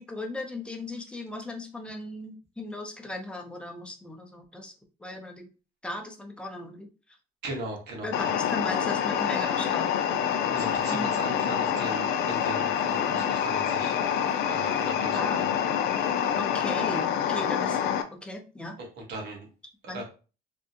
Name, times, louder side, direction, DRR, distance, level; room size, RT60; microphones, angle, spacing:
voice 1, 0.0-4.7 5.0-5.5 5.8-6.9 8.0-10.1 10.9-11.2 15.1-15.5 16.4-17.8 18.2-18.8 19.9-20.0, left 1 dB, 5° left, 2 dB, 0.6 m, -37 dB
voice 2, 7.4-8.3 10.3-14.0 14.5-15.6 18.8-19.5 19.9-20.0, right 2 dB, 75° right, 0 dB, 1.3 m, -38 dB
sound 1, 8.1-18.0, left 8 dB, 80° left, 0.4 m, -26 dB
3.5 x 2.0 x 2.7 m, 0.34 s
cardioid pair, 110°, 17 cm